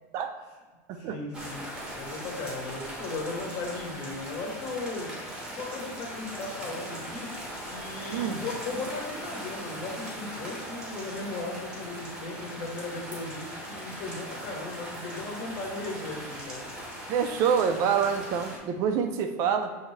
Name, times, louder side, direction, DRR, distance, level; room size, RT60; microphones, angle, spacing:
voice 1, 0.9-1.6 2.0-5.1 5.5-7.3 7.7-16.6, left 3 dB, 40° left, 0 dB, 0.9 m, -37 dB
sound 1, 1.3-18.6, equal, 10° right, 0.8 m, -39 dB
voice 2, 8.1-8.4 17.1-19.7, right 7 dB, 35° right, 7 dB, 0.4 m, -26 dB
6.0 x 2.7 x 3.1 m, 1.3 s
supercardioid pair, 170°, 9 cm